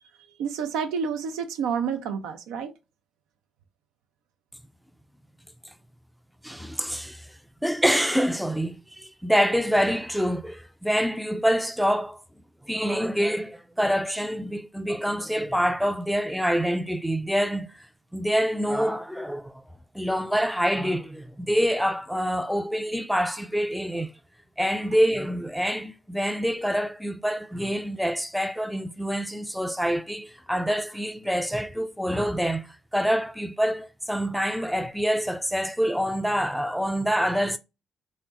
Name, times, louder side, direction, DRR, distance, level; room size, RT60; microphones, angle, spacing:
voice 1, 0.4-2.7, right 6 dB, 65° right, 0.4 m, -29 dB
voice 2, 6.4-7.3 7.6-12.2 12.6-17.9 18.1-19.6 19.9-24.1 24.6-37.6, equal, ahead, 0.4 m, -26 dB
3.7 x 2.1 x 4.1 m
figure-of-eight pair, 40°, 0 cm